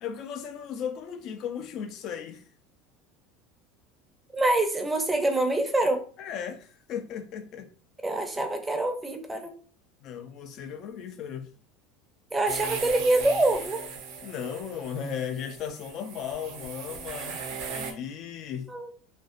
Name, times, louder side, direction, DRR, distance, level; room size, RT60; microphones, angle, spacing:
voice 1, 0.0-2.4 6.2-7.7 10.0-11.5 14.2-18.7, left 8 dB, 50° left, 0.4 m, -36 dB
voice 2, 4.3-6.0 8.0-9.5 12.3-13.8 18.7-18.9, right 2 dB, 10° right, 0.5 m, -25 dB
sound 1, 12.5-17.9, right 5 dB, 65° right, 0.5 m, -38 dB
2.5 x 2.0 x 2.5 m
supercardioid pair, 105°, 0 cm